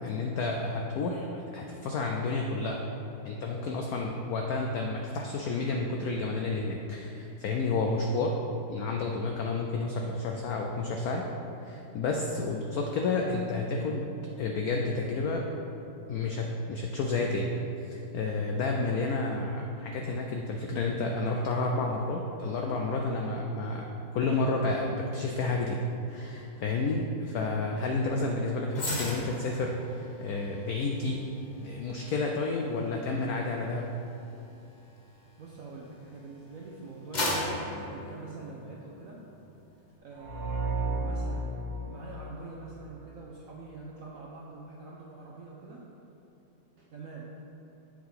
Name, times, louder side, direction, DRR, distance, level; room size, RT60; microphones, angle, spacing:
voice 1, 0.0-2.9 3.2-8.3 8.7-11.2 11.6-14.1 14.4-15.4 16.1-17.5 17.9-23.9 24.1-25.8 26.1-31.2 31.6-33.9, left 3 dB, 80° left, 1 dB, 0.8 m, -30 dB
voice 2, 28.1-28.4 35.4-39.2 40.0-45.9 46.8-47.3, right 3 dB, 70° right, -3 dB, 0.8 m, -45 dB
sound 1, 28.7-36.1 36.6-39.0 39.3-39.5, left 1 dB, 45° left, 0.6 m, -38 dB
sound 2, 40.2-43.0, right 2 dB, 40° right, 1.2 m, -33 dB
7.4 x 3.7 x 5.6 m, 2.9 s
omnidirectional pair, 2.1 m